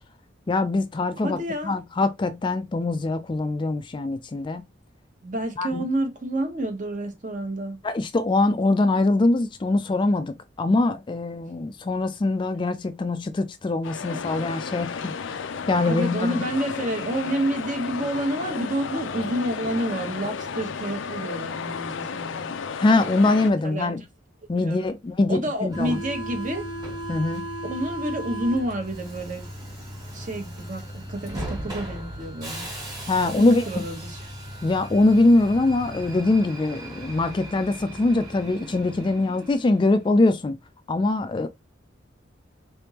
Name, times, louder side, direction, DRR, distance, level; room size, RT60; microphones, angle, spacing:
voice 1, 0.5-1.4 1.6-4.6 5.6-5.8 7.8-15.4 15.7-16.4 22.8-24.0 24.5-26.0 27.1-27.5 33.1-33.7 34.6-40.6 40.9-41.5, left 2 dB, 25° left, 0.3 m, -23 dB
voice 2, 1.2-1.8 5.2-7.8 14.1-14.2 15.8-22.5 23.6-24.1 24.5-24.9 25.3-26.7 27.7-29.5 30.1-32.7 33.3-34.3, right 1 dB, 45° right, 1.0 m, -29 dB
sound 1, 13.8-23.5, left 6 dB, 90° left, 0.5 m, -33 dB
Subway metro underground, 25.7-40.0, right 1 dB, 20° right, 1.6 m, -37 dB
3.8 x 3.4 x 2.9 m
head